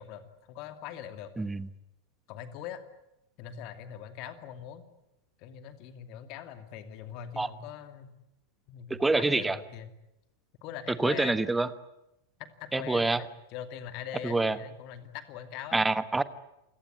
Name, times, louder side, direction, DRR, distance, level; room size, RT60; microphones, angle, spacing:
voice 1, 0.0-1.3 2.3-2.8 3.4-4.8 5.4-8.1 8.7-9.9 10.6-11.4 12.4-15.8, left 10 dB, 40° left, 9 dB, 2.5 m, -42 dB
voice 2, 1.4-1.7 7.4-7.5 8.9-9.6 11.0-11.7 12.7-13.2 14.2-14.6 15.7-16.2, right 3 dB, 10° right, 14 dB, 1.2 m, -26 dB
28.5 x 17.5 x 9.5 m, 0.89 s
figure-of-eight pair, 90°, 0 cm